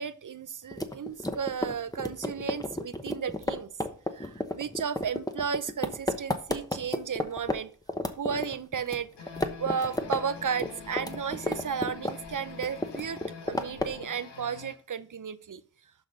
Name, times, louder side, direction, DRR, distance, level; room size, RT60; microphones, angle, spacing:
voice 1, 0.0-3.7 4.1-7.7 8.2-9.3 9.6-13.2 13.5-15.6, right 7 dB, 50° right, 14 dB, 0.7 m, -34 dB
sound 1, 0.7-7.6 7.9-9.0 9.3-10.2 10.5-12.3 12.6-14.0, left 1 dB, 10° left, 0.9 m, -32 dB
sound 2, 9.2-14.8, left 5 dB, 80° left, 1.3 m, -45 dB
11.5 x 4.1 x 4.0 m, 0.42 s
cardioid pair, 50°, 41 cm